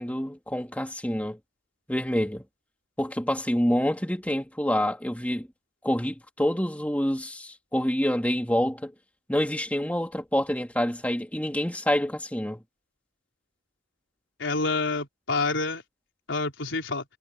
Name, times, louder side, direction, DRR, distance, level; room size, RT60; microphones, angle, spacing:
voice 1, 0.0-1.4 1.9-2.4 3.0-5.5 5.8-8.9 9.3-12.6, equal, 10° left, 2.5 m, -27 dB
voice 2, 14.4-15.8 16.3-17.0, left 3 dB, 85° left, 4.4 m, -27 dB
head